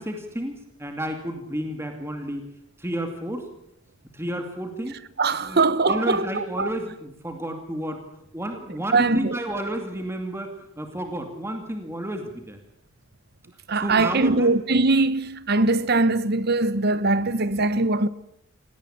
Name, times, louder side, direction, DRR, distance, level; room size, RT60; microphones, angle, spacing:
voice 1, 0.0-2.4 2.8-3.4 4.1-5.0 5.3-8.0 8.3-12.6 13.7-14.5, right 1 dB, 10° right, 2.5 m, -31 dB
voice 2, 5.2-6.7 8.9-9.4 13.7-18.1, right 3 dB, 45° right, 0.9 m, -21 dB
27.5 x 18.0 x 8.7 m
head